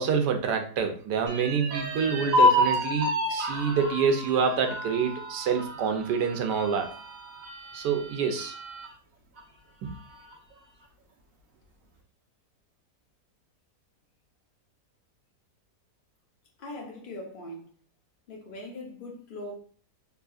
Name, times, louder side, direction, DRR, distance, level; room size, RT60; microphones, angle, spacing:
voice 1, 0.0-6.9 7.7-8.5 9.8-9.9, right 6 dB, 85° right, 1.2 m, -27 dB
sound 1, 1.3-8.9 9.4-9.5 9.8-10.5, left 1 dB, 60° right, 1.1 m, -29 dB
voice 2, 16.6-17.7 18.3-19.5, left 1 dB, 40° left, 0.8 m, -40 dB
3.6 x 2.8 x 2.4 m
omnidirectional pair, 1.8 m